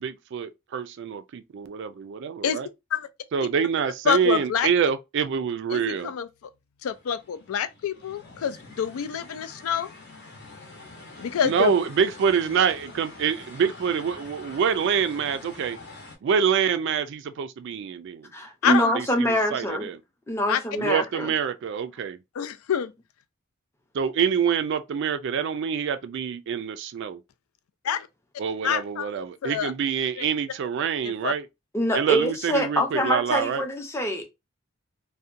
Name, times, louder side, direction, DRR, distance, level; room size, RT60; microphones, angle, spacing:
voice 1, 0.0-2.7 3.3-6.1 11.4-15.8 16.2-18.3 18.6-20.0 20.8-22.2 23.9-27.2 28.4-31.5 31.9-33.6, right 7 dB, 55° right, 0.3 m, -26 dB
voice 2, 4.1-4.7 5.7-6.3 6.8-9.9 11.2-11.7 18.6-18.9 20.5-20.6 22.4-22.9 27.8-28.1 28.6-29.1 29.4-29.7 30.2-30.3 31.0-31.3, left 8 dB, 85° left, 0.4 m, -26 dB
sound 1, 6.9-16.2, left 2 dB, 50° left, 0.8 m, -45 dB
voice 3, 18.3-19.9 20.3-21.3 31.7-34.3, equal, 10° left, 0.5 m, -25 dB
2.7 x 2.1 x 2.4 m
head